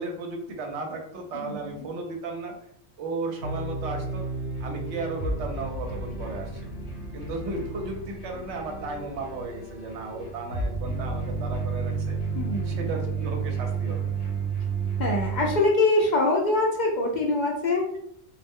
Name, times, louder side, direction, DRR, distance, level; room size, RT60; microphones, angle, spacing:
voice 1, 0.0-2.6 3.0-4.3 4.6-6.7 7.1-12.2 12.6-14.1, right 3 dB, 70° right, 2 dB, 0.9 m, -35 dB
voice 2, 1.3-1.9 12.3-12.9 15.0-17.9, left 2 dB, 65° left, 0 dB, 0.4 m, -24 dB
sound 1, 3.4-15.6, right 4 dB, 50° left, 1.0 m, -31 dB
2.4 x 2.0 x 3.6 m, 0.72 s
omnidirectional pair, 1.3 m